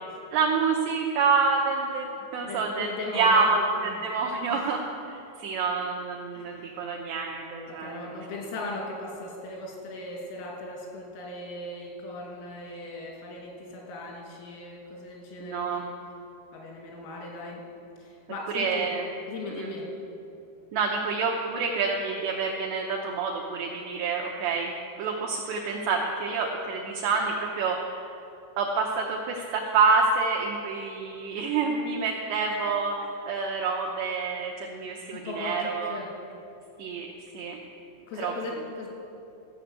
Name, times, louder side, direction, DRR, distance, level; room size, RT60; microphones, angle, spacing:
voice 1, 0.3-2.1 2.3-4.8 5.1-8.2 15.4-15.8 18.5-19.1 19.6-19.7 20.7-24.7 25.0-27.8 28.6-36.0 36.8-37.1 37.3-37.6 38.2-38.3, right 4 dB, 75° right, 0 dB, 2.6 m, -27 dB
voice 2, 2.4-3.5 3.8-4.0 4.5-4.7 6.3-6.7 7.7-15.9 16.5-17.6 18.0-18.9 19.3-19.9 35.1-36.1 38.1-38.9, left 2 dB, 90° left, -2 dB, 5.1 m, -38 dB
15.0 x 6.6 x 8.0 m, 2.8 s
omnidirectional pair, 5.8 m